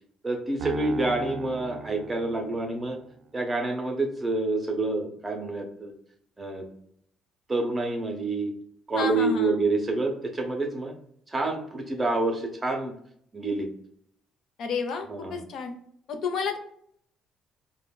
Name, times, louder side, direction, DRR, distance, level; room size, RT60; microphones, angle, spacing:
voice 1, 0.2-3.0 3.3-5.9 6.4-6.7 7.5-8.5 8.9-10.9 11.3-12.9 13.3-13.7 15.1-15.4, right 2 dB, 15° right, 2 dB, 0.7 m, -28 dB
Piano, 0.6-3.0, right 5 dB, 70° right, 0.3 m, -38 dB
voice 2, 9.0-9.6 14.6-15.7 16.1-16.6, left 5 dB, 60° left, 5 dB, 0.5 m, -31 dB
4.3 x 2.1 x 2.2 m, 0.67 s
cardioid pair, 145°, 0 cm